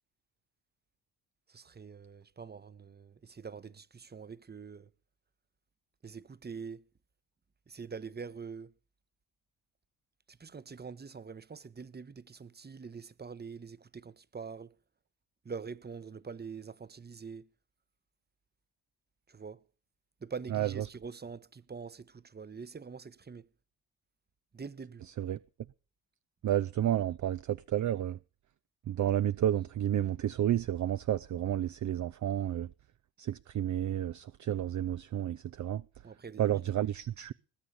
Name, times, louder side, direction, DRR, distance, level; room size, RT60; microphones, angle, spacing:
voice 1, 1.5-4.9 6.0-6.9 7.7-8.7 10.3-14.8 15.4-17.5 19.3-19.6 20.2-23.5 24.5-25.1 36.0-36.9, right 5 dB, 20° right, 1.0 m, -45 dB
voice 2, 26.4-28.2 28.9-32.7 33.2-35.8 36.4-37.3, right 11 dB, 40° right, 0.6 m, -31 dB
20.0 x 8.3 x 5.6 m
supercardioid pair, 55°, 44 cm